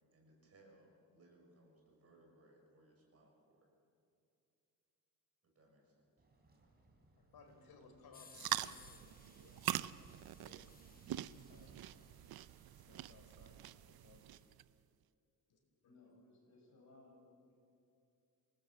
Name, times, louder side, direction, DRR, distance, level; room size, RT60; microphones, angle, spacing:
voice 1, 0.1-3.7 5.4-6.1, right 1 dB, 40° right, 0 dB, 6.6 m, -66 dB
sound 1, 6.2-12.0, right 2 dB, 25° right, 3.7 m, -68 dB
voice 2, 7.1-9.6 10.0-12.3 12.8-14.3 14.7-14.8 15.5-15.9, left 4 dB, 85° left, 4 dB, 4.8 m, -64 dB
sound 2, 8.1-14.5, left 5 dB, 25° left, 0.8 m, -64 dB
sound 3, 8.3-14.6, right 13 dB, 90° right, 0.7 m, -44 dB
voice 3, 15.8-17.5, left 2 dB, 50° left, -1 dB, 7.6 m, -63 dB
27.5 x 18.5 x 7.9 m, 2.6 s
wide cardioid pair, 170°, 35 cm